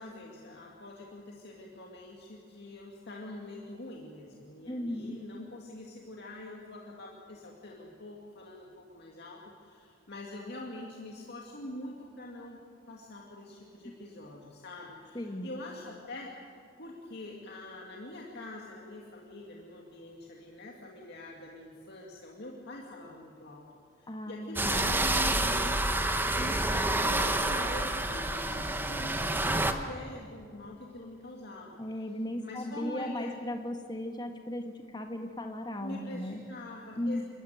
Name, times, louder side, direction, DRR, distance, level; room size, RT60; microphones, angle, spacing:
voice 1, 0.0-12.6 12.9-16.5 16.8-23.6 24.0-25.8 26.1-31.8 32.4-33.4 35.8-37.2, left 1 dB, 60° left, -2 dB, 2.2 m, -44 dB
voice 2, 4.7-5.2 13.8-13.9 15.1-15.5 24.1-24.9 31.8-36.4 36.9-37.2, left 1 dB, 25° left, 4 dB, 1.5 m, -36 dB
sound 1, 24.6-29.7, right 2 dB, 10° right, 1.1 m, -28 dB
28.0 x 13.5 x 9.1 m, 2.2 s
head